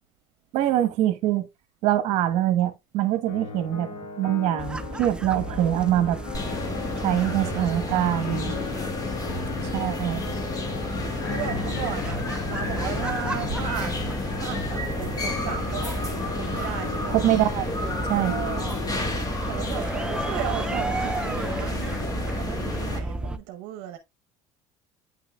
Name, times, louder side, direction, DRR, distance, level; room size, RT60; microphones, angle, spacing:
voice 1, 0.5-1.5 1.8-3.9 4.2-6.2 7.0-8.5 9.7-10.2 17.1-17.7 18.1-18.4, right 13 dB, 65° right, 1.1 m, -24 dB
sound 1, 3.3-19.2, left 5 dB, 85° left, 2.0 m, -36 dB
sound 2, 4.6-23.4, right 2 dB, 5° right, 0.5 m, -33 dB
voice 2, 5.1-5.8 7.2-8.8 11.3-16.1 16.4-17.1 18.1-18.7 19.5-22.0 22.3-24.0, right 11 dB, 85° right, 0.7 m, -36 dB
sound 3, 6.3-23.0, left 2 dB, 30° left, 2.0 m, -32 dB
9.0 x 5.7 x 2.2 m
cardioid pair, 120°, 13 cm